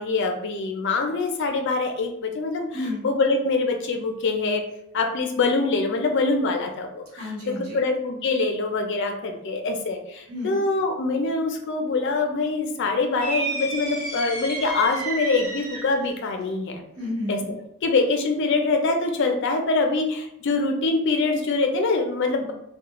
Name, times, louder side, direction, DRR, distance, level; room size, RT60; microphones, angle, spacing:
voice 1, 0.0-2.6 3.0-4.6 4.9-7.3 7.7-16.8 17.3-17.4 17.8-22.5, left 3 dB, 55° left, 4 dB, 0.4 m, -24 dB
voice 2, 2.7-3.0 7.1-7.8 10.3-10.6 17.0-17.5, left 1 dB, 90° right, -4 dB, 1.1 m, -31 dB
sound 1, 13.2-16.1, right 2 dB, 45° right, 1.1 m, -31 dB
2.4 x 2.1 x 2.9 m, 0.76 s
head